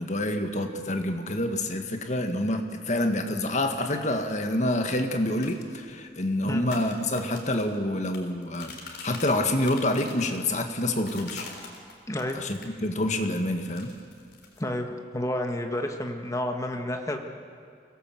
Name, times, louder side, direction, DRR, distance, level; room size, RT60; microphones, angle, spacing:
voice 1, 0.0-11.5 12.3-13.9, left 1 dB, 40° left, 5 dB, 1.6 m, -27 dB
sound 1, 5.3-12.8 13.1-14.7, left 4 dB, 75° left, 3.6 m, -45 dB
voice 2, 12.1-12.4 14.6-17.2, left 1 dB, 20° left, 4 dB, 1.5 m, -30 dB
23.5 x 17.5 x 7.7 m, 2.2 s
head